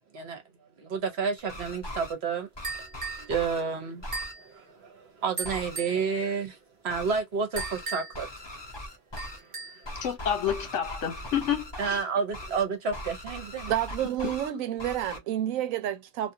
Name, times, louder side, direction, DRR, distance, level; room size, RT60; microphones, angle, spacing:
voice 1, 0.8-2.5 2.8-2.9 3.2-4.0 4.4-6.6 6.8-8.3 9.4-10.0 11.8-13.7, right 5 dB, 55° right, 1.0 m, -30 dB
sound 1, 1.4-2.1 2.5-3.6 4.0-4.3 5.4-5.8 6.9-7.2 7.5-7.9 8.1-9.4 9.8-12.0 12.3-12.6 12.9-14.5 14.8-15.2, left 1 dB, 25° left, 0.6 m, -40 dB
sound 2, 2.6-3.3 4.1-4.4 5.4-6.0 7.6-8.3 9.2-9.9, right 4 dB, 40° right, 0.5 m, -37 dB
voice 2, 10.0-12.0 14.5-14.6, left 9 dB, 65° left, 1.2 m, -29 dB
voice 3, 13.7-16.3, right 12 dB, 85° right, 1.0 m, -29 dB
2.5 x 2.3 x 2.7 m
omnidirectional pair, 1.4 m